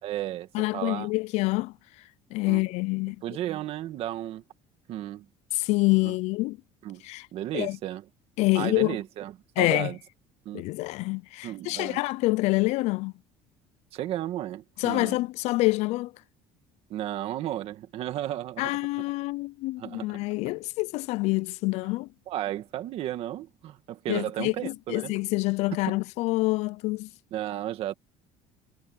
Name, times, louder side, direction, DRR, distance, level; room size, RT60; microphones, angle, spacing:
voice 1, 0.0-1.1 2.5-2.6 3.2-4.4 4.9-5.3 6.0-6.2 6.8-7.0 7.3-8.0 8.6-10.0 10.5-10.7 11.4-12.0 13.9-15.2 16.9-18.8 19.8-20.2 22.3-25.1 25.9-26.0 27.3-27.9, right 13 dB, 50° right, 1.9 m, -34 dB
voice 2, 0.5-1.7 2.3-3.2 5.5-6.6 7.0-7.3 7.5-7.8 8.4-9.0 9.6-9.9 10.5-13.1 14.8-16.1 18.6-22.1 24.1-27.1, left 22 dB, 60° left, 0.4 m, -26 dB
cardioid pair, 165°, 13 cm